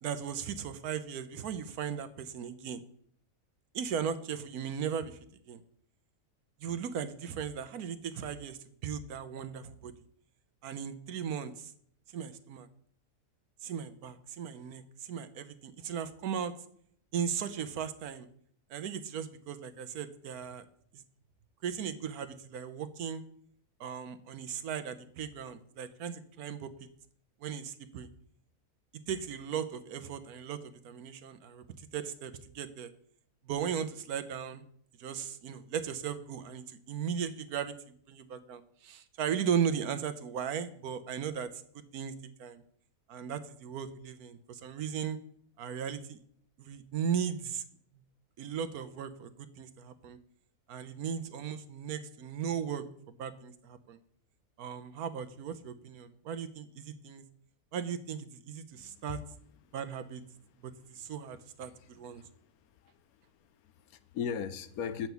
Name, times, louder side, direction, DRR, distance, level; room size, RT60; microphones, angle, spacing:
voice 1, 0.0-2.8 3.7-5.2 5.5-5.6 6.6-9.9 10.6-11.7 12.1-12.7 13.6-16.5 17.1-18.3 18.7-20.7 20.9-21.0 21.6-23.2 23.8-26.9 27.4-28.1 29.1-31.7 31.9-32.9 33.4-34.6 35.0-41.5 41.7-42.1 42.4-42.6 43.1-45.2 45.6-46.2 46.6-47.6 48.4-50.2 50.7-54.0 54.6-57.2 57.7-59.2 59.7-60.2 60.6-62.2, right 8 dB, 85° right, 11 dB, 1.3 m, -37 dB
voice 2, 58.7-59.0 61.7-61.9 62.1-62.5 62.8-65.1, left 7 dB, 80° left, 12 dB, 1.1 m, -39 dB
7.9 x 5.9 x 6.9 m, 0.63 s
omnidirectional pair, 1.6 m